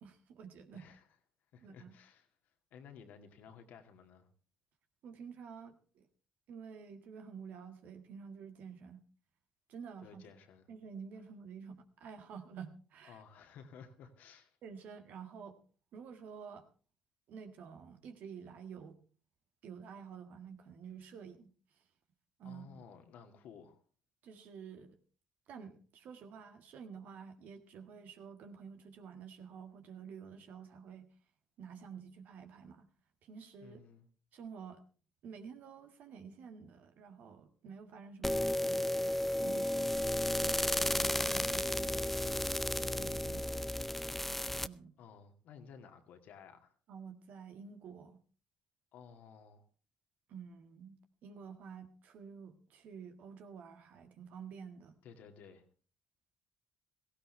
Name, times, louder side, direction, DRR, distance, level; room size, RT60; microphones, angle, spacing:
voice 1, 0.0-0.9 1.6-1.9 5.0-6.1 6.5-9.0 9.7-10.2 10.7-13.2 14.6-15.6 15.9-16.7 17.3-19.0 19.6-21.5 22.4-22.8 24.2-25.0 25.5-31.1 31.6-32.9 33.2-33.8 34.3-34.8 35.2-39.1 39.4-42.1 42.8-43.7 44.6-44.9 46.9-48.2 50.3-55.0, right 6 dB, 60° right, 1.9 m, -50 dB
voice 2, 0.7-1.1 1.5-2.3 2.7-4.3 10.0-10.7 13.0-14.6 22.4-23.8 33.6-34.1 45.0-46.8 48.9-49.7 55.0-55.7, left 6 dB, 65° left, 2.0 m, -55 dB
sound 1, 38.2-44.7, left 1 dB, 5° left, 0.6 m, -33 dB
17.0 x 15.5 x 3.3 m
hypercardioid pair, 50°, 3 cm